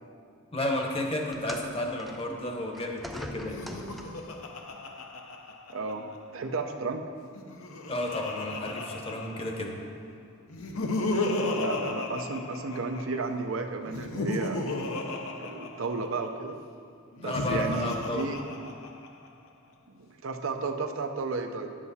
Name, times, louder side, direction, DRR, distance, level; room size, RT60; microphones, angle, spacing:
voice 1, 0.5-3.6 7.9-9.7 17.2-18.3, left 1 dB, 25° left, 2 dB, 0.9 m, -32 dB
sound 1, 1.3-4.4 5.4-5.5 6.4-6.5, equal, ahead, 0.4 m, -43 dB
Laughter, 3.4-6.2 7.2-9.8 10.5-13.2 13.9-16.3 17.1-19.3, left 2 dB, 80° left, 0.8 m, -34 dB
voice 2, 5.7-6.0 6.3-7.1 11.6-14.7 15.4-16.6 17.2-18.4 19.9-21.7, right 3 dB, 65° right, 6 dB, 0.6 m, -33 dB
9.6 x 7.5 x 4.2 m, 2.2 s
head